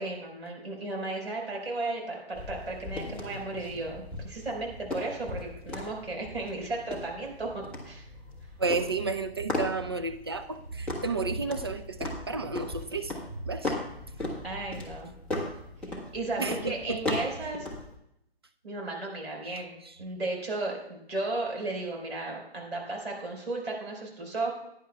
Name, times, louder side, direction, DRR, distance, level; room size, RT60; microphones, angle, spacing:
voice 1, 0.0-8.1 14.4-15.1 15.9-17.7 18.6-24.5, right 2 dB, 75° right, -1 dB, 4.4 m, -35 dB
sound 1, 2.3-17.9, left 2 dB, 5° left, 1.3 m, -38 dB
voice 2, 8.6-13.1 13.4-13.8 16.4-17.0 19.8-19.9, right 3 dB, 25° right, 7 dB, 0.3 m, -32 dB
16.0 x 10.0 x 2.3 m, 0.79 s
figure-of-eight pair, 140°, 31 cm